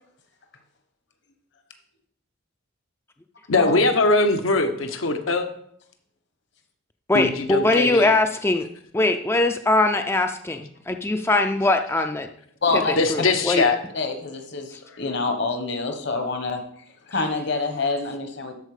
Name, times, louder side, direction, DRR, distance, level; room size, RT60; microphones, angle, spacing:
voice 1, 3.5-5.5 7.1-8.1 13.0-13.8, left 3 dB, 80° left, 6 dB, 1.0 m, -21 dB
voice 2, 7.1-8.7 8.9-12.3 13.1-13.6, left 2 dB, 10° left, 6 dB, 0.4 m, -21 dB
voice 3, 12.6-13.0 13.9-16.6 17.1-18.5, left 3 dB, 60° left, 6 dB, 1.3 m, -26 dB
13.0 x 4.5 x 4.9 m, 0.67 s
head